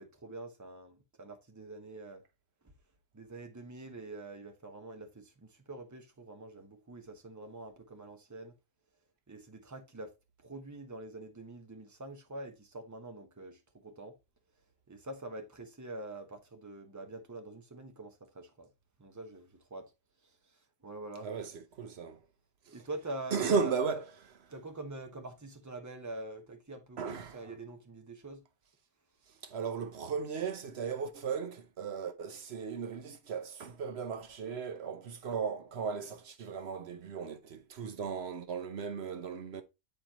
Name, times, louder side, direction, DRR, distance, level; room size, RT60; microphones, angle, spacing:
voice 1, 0.0-2.2 3.1-8.5 9.3-10.1 10.4-14.1 14.9-18.7 19.0-19.9 20.2-21.3 22.7-23.7 24.5-28.4, right 2 dB, 15° right, 1.0 m, -45 dB
voice 2, 21.2-22.2 22.7-22.8 23.3-24.1 27.0-27.5 29.3-39.6, right 5 dB, 75° right, 1.1 m, -36 dB
8.6 x 4.5 x 2.9 m
omnidirectional pair, 1.1 m